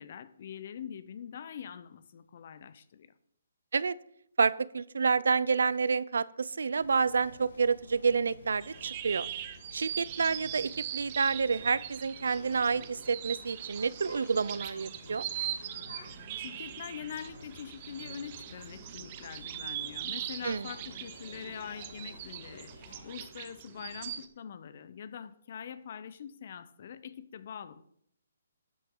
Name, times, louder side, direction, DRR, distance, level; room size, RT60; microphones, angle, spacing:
voice 1, 0.0-3.1 16.4-22.7 23.0-27.8, left 8 dB, 50° left, 15 dB, 0.7 m, -44 dB
voice 2, 4.4-9.3 9.7-15.2 20.4-20.7, right 5 dB, 80° right, 19 dB, 0.5 m, -29 dB
sound 1, 6.8-23.3, left 2 dB, 85° left, 3.0 m, -52 dB
sound 2, 8.6-24.3, right 11 dB, 30° right, 0.7 m, -41 dB
11.5 x 8.5 x 3.8 m, 0.72 s
hypercardioid pair, 160°, 0 cm